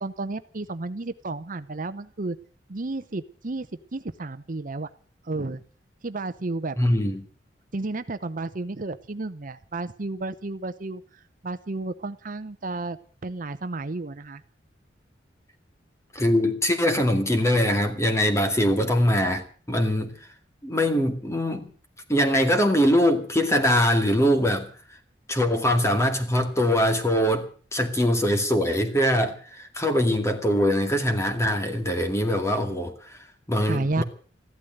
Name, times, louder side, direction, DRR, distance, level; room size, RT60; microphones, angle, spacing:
voice 1, 0.0-2.4 2.7-3.7 3.9-4.9 5.2-5.6 6.0-6.8 7.7-11.0 11.4-13.0 13.2-14.4 18.8-18.9 33.6-34.0, right 2 dB, 50° right, 11 dB, 0.8 m, -32 dB
voice 2, 6.8-7.2 16.1-20.1 20.6-21.7 22.1-24.7 25.3-33.2 33.5-34.0, equal, 15° left, 6 dB, 2.3 m, -22 dB
15.0 x 12.0 x 7.9 m, 0.42 s
head